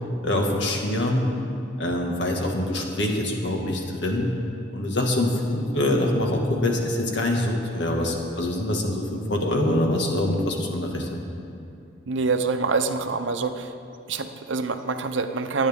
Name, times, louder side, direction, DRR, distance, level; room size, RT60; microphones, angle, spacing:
voice 1, 0.2-1.2 1.8-4.3 4.7-11.2, left 1 dB, 70° left, 1 dB, 1.7 m, -24 dB
voice 2, 12.1-13.7 14.1-15.7, right 4 dB, 80° right, 8 dB, 0.7 m, -26 dB
22.0 x 9.3 x 3.6 m, 2.5 s
head